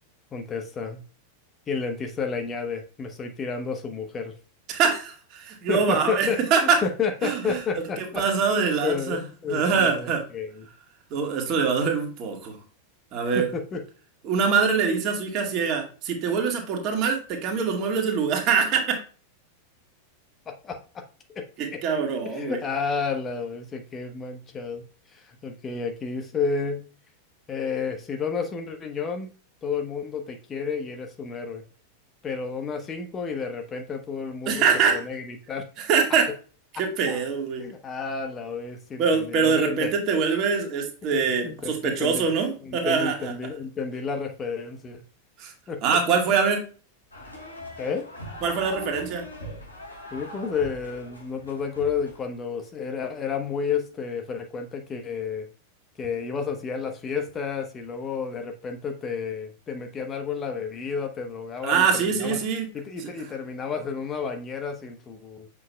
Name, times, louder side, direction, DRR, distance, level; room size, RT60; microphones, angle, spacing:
voice 1, 0.3-1.0 1.7-4.3 5.7-8.2 8.5-10.7 13.3-13.8 20.5-21.1 21.3-21.8 22.2-26.9 27.5-29.3 29.6-31.6 32.2-34.7 34.9-35.7 36.1-36.2 36.7-37.2 37.6-39.9 41.1-42.3 42.6-45.0 45.7-46.0 47.8-48.1 50.1-55.5 56.0-62.4 62.7-65.5, left 5 dB, 25° left, 5 dB, 1.0 m, -31 dB
voice 2, 4.7-6.8 7.2-7.6 8.0-9.2 9.5-10.2 11.1-12.5 13.1-13.5 14.2-19.0 21.6-22.6 34.5-35.0 35.8-36.3 36.8-37.6 39.0-43.3 45.4-45.5 45.8-46.6 48.4-49.3 61.6-62.7 63.0-63.1, right 6 dB, 35° right, 2 dB, 1.8 m, -24 dB
sound 1, 47.1-52.2, equal, 85° left, 3.3 m, -41 dB
7.5 x 6.0 x 2.3 m, 0.36 s
figure-of-eight pair, 90°, 0 cm